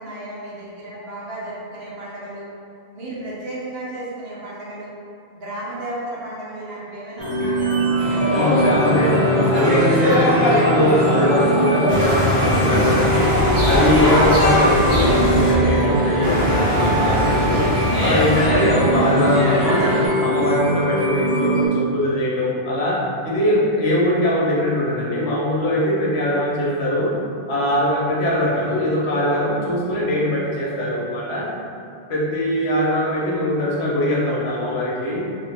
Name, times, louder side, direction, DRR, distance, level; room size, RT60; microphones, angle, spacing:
voice 1, 0.0-2.5 2.9-5.0 5.3-7.7, right 1 dB, 70° right, -6 dB, 0.9 m, -33 dB
sound 1, 7.2-21.7, right 1 dB, 25° left, 0.5 m, -22 dB
sound 2, 8.0-20.1, equal, ahead, 1.2 m, -23 dB
voice 2, 8.3-13.3 13.7-17.7 18.0-19.9 20.2-27.1 27.5-31.5 32.1-35.2, left 1 dB, 75° left, -5 dB, 1.0 m, -21 dB
sound 3, 11.9-15.5 16.2-18.5, left 1 dB, 50° right, 1.2 m, -21 dB
2.8 x 2.4 x 3.3 m, 2.5 s
omnidirectional pair, 1.1 m